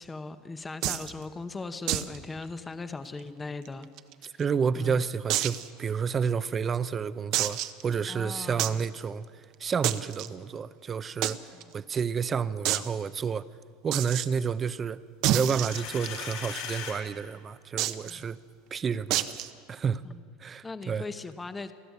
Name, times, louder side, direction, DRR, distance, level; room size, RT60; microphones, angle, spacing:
voice 1, 0.0-3.9 4.2-4.4 4.8-5.0 8.1-8.9 11.5-11.7 18.0-18.3 20.0-20.2 20.6-21.7, left 3 dB, 15° left, 0.8 m, -39 dB
sound 1, 0.8-1.1 1.9-2.2 2.4-2.5 2.9-3.0 3.7-4.4 5.3-5.7 6.2-6.3 7.3-7.8 8.6-8.8 9.8-10.3 11.2-11.3 11.6-11.7 12.0-12.1 12.6-12.9 13.9-14.3 15.2-16.3 17.8-18.1 19.1-19.5, right 13 dB, 55° right, 0.9 m, -28 dB
voice 2, 4.2-9.3 9.6-11.4 11.7-13.4 13.8-15.0 15.3-18.4 18.7-19.3 19.7-20.0 20.4-21.0, right 6 dB, 25° right, 0.6 m, -30 dB
sound 2, 15.4-17.0, left 7 dB, 85° left, 4.7 m, -38 dB
29.5 x 11.0 x 8.3 m
supercardioid pair, 130°, 0 cm